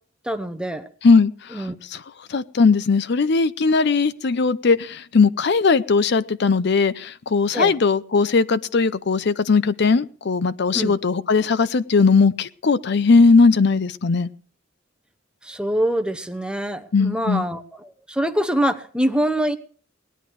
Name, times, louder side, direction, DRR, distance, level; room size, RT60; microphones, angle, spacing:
voice 1, 0.2-0.9 1.5-1.7 7.5-7.7 10.7-10.9 15.4-19.6, right 1 dB, 5° right, 9 dB, 0.9 m, -24 dB
voice 2, 1.0-2.0 2.3-14.3 16.9-17.5, left 4 dB, 60° left, 15 dB, 0.5 m, -18 dB
19.0 x 11.0 x 4.7 m, 0.43 s
head